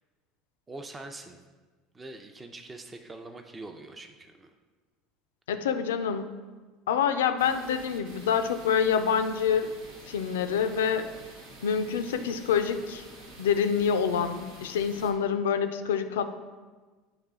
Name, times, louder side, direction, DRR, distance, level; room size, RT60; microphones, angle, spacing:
voice 1, 0.7-1.4 1.9-4.5, right 2 dB, 20° right, 5 dB, 0.5 m, -43 dB
voice 2, 5.5-6.3 6.9-9.7 10.1-11.1 11.6-13.0 13.4-16.3, left 7 dB, 90° left, 9 dB, 0.4 m, -26 dB
sound 1, 7.4-15.1, right 1 dB, 85° right, 1.0 m, -48 dB
8.7 x 3.2 x 3.7 m, 1.3 s
hypercardioid pair, 85°, 0 cm